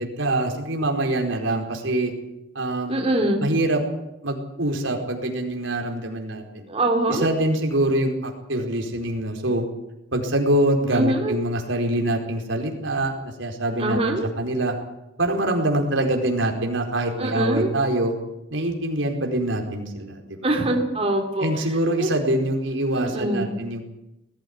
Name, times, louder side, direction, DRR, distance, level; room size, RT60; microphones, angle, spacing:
voice 1, 0.0-2.1 2.5-3.1 3.4-3.8 4.2-6.7 7.1-9.6 10.1-14.7 15.2-18.1 18.5-20.5 21.4-23.8, right 1 dB, 80° right, 2 dB, 4.6 m, -24 dB
voice 2, 2.9-3.4 6.7-7.3 10.9-11.4 13.8-14.3 17.2-17.7 20.4-21.5 22.0-22.1 22.9-23.5, right 1 dB, 30° right, 2 dB, 2.8 m, -23 dB
20.5 x 14.5 x 9.6 m, 0.90 s
head